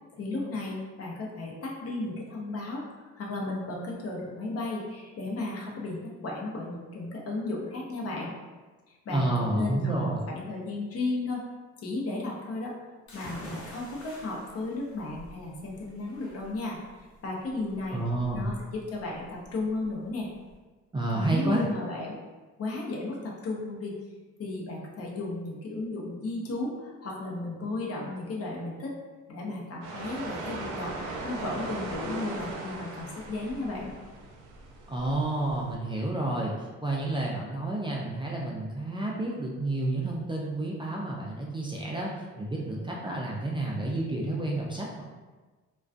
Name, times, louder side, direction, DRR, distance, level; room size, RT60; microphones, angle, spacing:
voice 1, 0.1-8.3 8.9-11.4 11.8-12.7 13.1-18.0 18.3-20.3 21.1-22.1 22.6-24.0 24.4-28.9 29.3-30.9 31.2-33.9, left 2 dB, 50° left, -2 dB, 0.7 m, -34 dB
voice 2, 9.1-10.3 17.9-18.5 20.9-21.6 34.9-42.1 42.4-45.0, right 2 dB, 15° right, -3 dB, 0.3 m, -30 dB
sound 1, 13.1-20.6, left 1 dB, 75° left, 1.0 m, -47 dB
sound 2, 29.8-35.8, right 3 dB, 90° right, 0.5 m, -39 dB
2.3 x 2.2 x 2.4 m, 1.3 s
cardioid pair, 90°, 30 cm